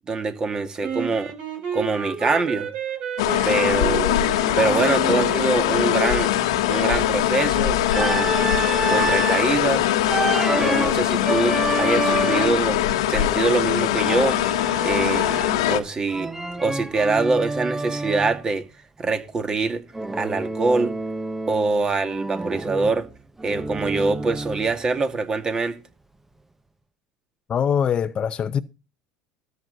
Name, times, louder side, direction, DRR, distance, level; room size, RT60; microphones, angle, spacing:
voice 1, 0.1-1.3 1.7-2.7 3.4-4.2 4.6-6.3 6.7-8.3 8.9-9.9 10.5-12.8 13.1-14.4 14.8-15.3 15.7-16.3 16.6-18.6 19.0-19.8 20.1-20.9 21.5-23.1 23.4-25.8, right 3 dB, 25° right, 2.4 m, -24 dB
Wind instrument woodwind instrument, 0.8-5.9, right 6 dB, 60° right, 7.2 m, -31 dB
sound 1, 3.2-15.8, left 12 dB, 90° left, 1.4 m, -22 dB
Organ, 7.9-9.5 10.1-12.7 14.0-15.7 16.1-18.4 19.9-21.8 22.1-24.8, right 2 dB, 10° right, 1.0 m, -28 dB
voice 2, 27.5-28.6, left 8 dB, 35° left, 0.8 m, -22 dB
13.5 x 9.4 x 4.1 m
supercardioid pair, 100°, 3 cm